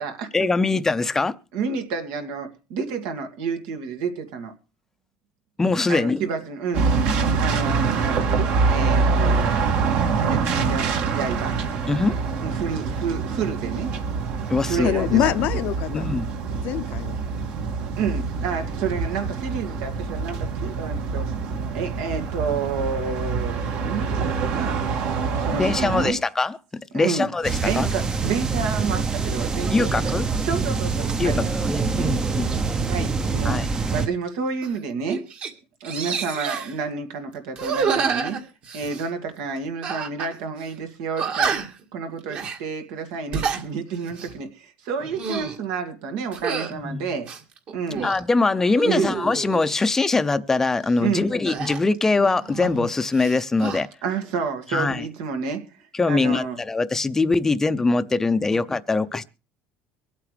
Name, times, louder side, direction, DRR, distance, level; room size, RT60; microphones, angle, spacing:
voice 1, 0.3-1.4 5.6-6.2 11.9-12.2 14.5-15.2 15.9-16.3 25.6-26.6 26.9-27.9 29.7-30.2 31.2-32.5 33.4-33.7 46.7-47.0 48.0-53.9 54.7-55.0 56.0-59.2, left 3 dB, 15° left, 0.6 m, -22 dB
voice 2, 1.5-4.5 5.9-6.9 7.3-9.5 9.9-10.9 11.1-11.6 12.4-13.9 14.7-15.6 18.0-21.3 21.7-24.8 25.5-26.2 26.9-27.3 27.6-30.1 30.4-31.5 32.0-32.1 32.9-35.3 35.8-38.4 38.7-41.5 41.9-47.3 47.7-48.1 48.8-49.2 51.0-51.3 54.0-56.6, right 5 dB, 80° right, 2.2 m, -29 dB
sound 1, 6.7-26.1, right 5 dB, 65° right, 2.3 m, -25 dB
voice 3, 14.8-16.1 16.6-17.2 58.5-58.6, left 13 dB, 60° left, 0.7 m, -24 dB
sound 2, 27.4-34.1, right 4 dB, 20° right, 0.7 m, -25 dB
sound 3, 34.6-34.8 35.1-35.5 35.8-36.7 37.5-39.1 39.8-40.3 40.6-40.7 41.2-41.8 42.3-42.6 43.1-43.6 44.1-44.3 45.0-45.6 46.3-46.7 47.2-48.2 48.7-49.7 51.5-52.9 53.1-53.8, right 6 dB, 45° right, 1.9 m, -28 dB
24.0 x 8.5 x 3.3 m
cardioid pair, 140°, 3 cm